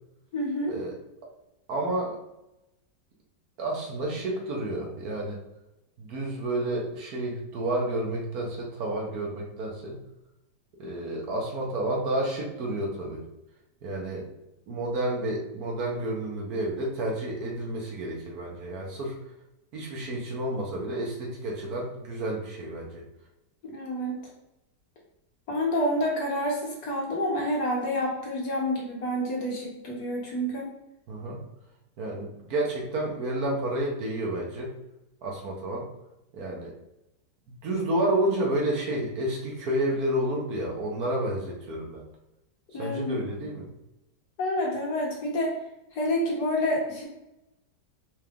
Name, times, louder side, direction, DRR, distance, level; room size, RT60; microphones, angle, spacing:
voice 1, 0.3-0.8 23.7-24.1 25.5-30.7 42.7-43.2 44.4-45.5 45.9-47.0, left 1 dB, 65° left, -2 dB, 1.4 m, -28 dB
voice 2, 1.7-2.2 3.6-5.4 6.0-10.0 10.8-13.2 13.8-14.3 14.7-19.1 19.7-23.0 31.1-31.4 32.0-34.7 35.2-35.9 36.3-36.7 37.6-42.0 42.8-43.7, right 1 dB, 65° right, -1 dB, 1.2 m, -30 dB
4.7 x 2.4 x 3.5 m, 0.89 s
omnidirectional pair, 1.9 m